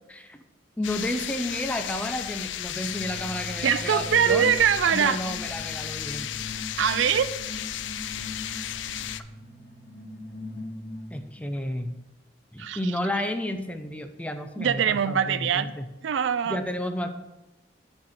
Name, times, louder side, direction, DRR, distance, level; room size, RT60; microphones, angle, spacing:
voice 1, 0.1-0.4 0.8-4.5 4.9-6.3 11.1-12.0 12.5-15.9 16.5-17.1, left 1 dB, 5° left, 7 dB, 0.5 m, -31 dB
sound 1, 0.8-9.2, left 11 dB, 75° left, 0.4 m, -34 dB
sound 2, 2.8-11.4, left 1 dB, 55° left, 1.8 m, -40 dB
voice 2, 3.6-5.2 6.8-7.3 12.6-12.8 14.6-15.7 16.0-16.6, right 8 dB, 80° right, 14 dB, 0.4 m, -23 dB
9.9 x 4.4 x 4.9 m, 0.99 s
head